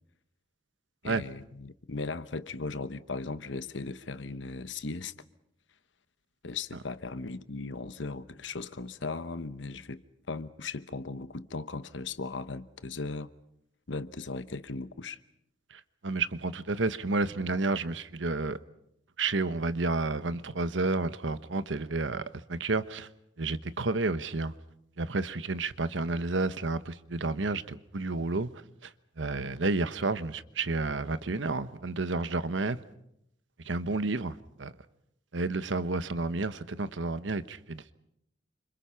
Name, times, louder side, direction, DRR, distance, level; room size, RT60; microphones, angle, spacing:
voice 1, 1.0-5.1 6.4-10.0 10.3-13.3 13.9-15.2, left 3 dB, 80° left, 1.0 m, -37 dB
voice 2, 15.7-18.6 19.2-22.2 22.5-23.1 23.4-24.5 25.0-28.5 28.8-28.9 29.2-32.8 33.6-34.7 35.3-37.9, right 3 dB, 85° right, 1.1 m, -31 dB
28.5 x 26.5 x 5.8 m
head